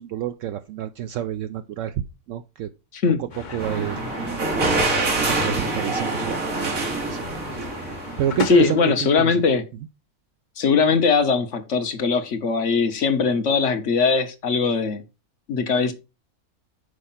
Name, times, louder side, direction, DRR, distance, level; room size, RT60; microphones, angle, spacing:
voice 1, 0.0-2.0 2.3-2.7 3.2-4.0 5.2-7.2 7.6-7.8 8.2-9.4, right 11 dB, 70° right, 0.9 m, -28 dB
sound 1, 3.3-8.7, left 5 dB, 40° left, 0.8 m, -36 dB
sound 2, 3.6-8.8, right 2 dB, 90° right, 2.3 m, -26 dB
voice 2, 8.5-9.6 10.6-15.0 15.5-15.9, left 5 dB, 65° left, 1.3 m, -20 dB
6.4 x 4.7 x 5.6 m
omnidirectional pair, 1.4 m